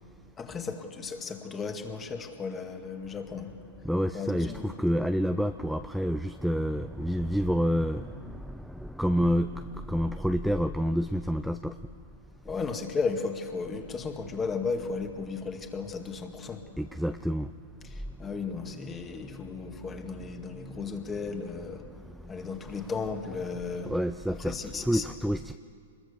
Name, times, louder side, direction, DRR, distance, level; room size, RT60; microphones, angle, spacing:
voice 1, 0.4-3.5 4.1-4.7 12.4-16.6 17.8-21.8 22.3-23.9 24.3-25.0, left 4 dB, 20° left, 5 dB, 2.2 m, -35 dB
voice 2, 3.8-11.8 16.8-17.5 18.2-18.3 18.8-19.6 20.5-20.9 21.8-22.8 23.8-24.6 24.8-25.6, equal, ahead, 9 dB, 0.5 m, -29 dB
26.0 x 21.5 x 6.9 m, 2.3 s
hypercardioid pair, 130°, 0 cm